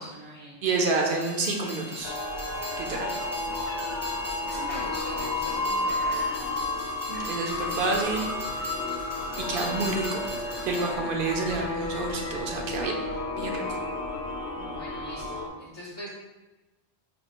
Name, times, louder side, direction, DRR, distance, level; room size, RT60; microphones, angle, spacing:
voice 1, 0.0-0.6 4.4-6.2 6.4-6.5 14.6-16.1, equal, 35° left, -8 dB, 0.5 m, -42 dB
voice 2, 0.6-2.1 2.8-3.2 7.1-8.7 9.4-10.2 10.6-13.0 13.4-13.8, right 3 dB, 60° right, 2 dB, 0.7 m, -29 dB
Train, 1.1-10.9, left 1 dB, 20° right, 0.5 m, -39 dB
sound 1, 2.0-15.5, left 2 dB, 75° left, 0.8 m, -32 dB
sound 2, 2.4-12.4, right 1 dB, 85° right, 1.1 m, -47 dB
4.3 x 2.4 x 2.8 m, 1.1 s
omnidirectional pair, 1.1 m